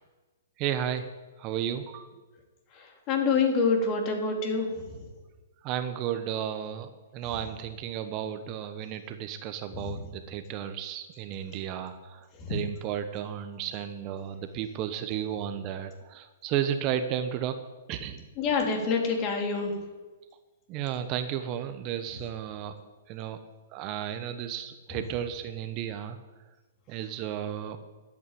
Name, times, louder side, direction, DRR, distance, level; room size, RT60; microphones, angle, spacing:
voice 1, 0.6-1.1 1.4-2.1 5.6-17.6 17.9-18.3 20.7-22.7 23.1-23.4 23.7-26.2 26.9-27.8, right 9 dB, 35° right, 9 dB, 1.1 m, -33 dB
voice 2, 2.8-4.7 12.4-12.5 18.4-19.7, left 4 dB, 35° left, 1 dB, 3.7 m, -26 dB
12.5 x 8.8 x 9.3 m, 1.2 s
hypercardioid pair, 135°, 0 cm